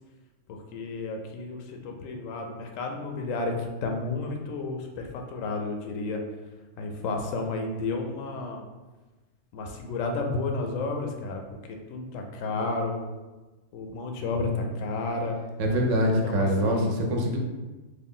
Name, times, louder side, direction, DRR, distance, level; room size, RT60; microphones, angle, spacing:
voice 1, 0.5-6.2 6.8-8.6 9.5-11.4 11.7-13.0 13.7-15.4 16.2-16.9, left 3 dB, 85° left, 3 dB, 0.9 m, -32 dB
voice 2, 15.6-17.4, equal, 75° right, 1 dB, 1.0 m, -24 dB
3.2 x 2.3 x 3.6 m, 1.2 s
omnidirectional pair, 1.3 m